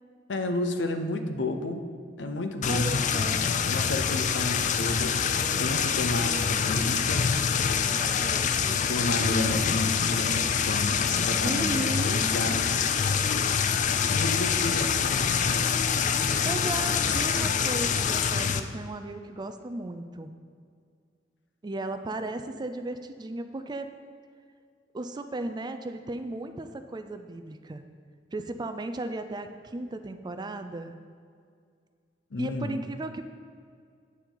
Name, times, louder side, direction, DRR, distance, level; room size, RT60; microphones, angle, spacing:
voice 1, 0.3-1.9 2.2-3.0 3.7-5.2 5.6-7.3 8.9-12.6 14.1-15.7 32.3-32.7, left 1 dB, 80° left, 6 dB, 0.7 m, -31 dB
sound 1, 2.6-18.6, left 6 dB, 45° left, 0.4 m, -26 dB
voice 2, 2.6-3.4 7.9-8.9 11.4-12.2 16.4-20.3 21.6-23.9 24.9-27.8 28.3-31.0 32.4-33.3, right 2 dB, 25° right, 9 dB, 0.4 m, -35 dB
8.4 x 7.1 x 3.9 m, 2.2 s
head